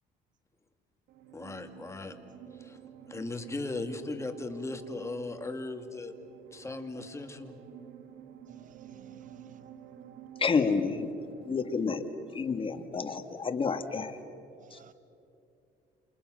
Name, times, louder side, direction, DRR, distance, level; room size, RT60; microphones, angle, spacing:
sound 1, 1.1-14.4, right 9 dB, 80° right, 2.0 m, -51 dB
voice 1, 1.3-2.2 2.5-2.8 3.1-6.1 6.5-7.5, left 3 dB, 15° left, 7 dB, 2.2 m, -38 dB
voice 2, 8.6-9.4 14.6-14.9, right 10 dB, 50° right, 14 dB, 1.0 m, -56 dB
voice 3, 10.4-11.1 11.4-12.1 12.3-14.2 14.7-14.8, left 5 dB, 30° left, 8 dB, 1.9 m, -29 dB
29.0 x 27.5 x 6.4 m, 2.7 s
cardioid pair, 110°, 17 cm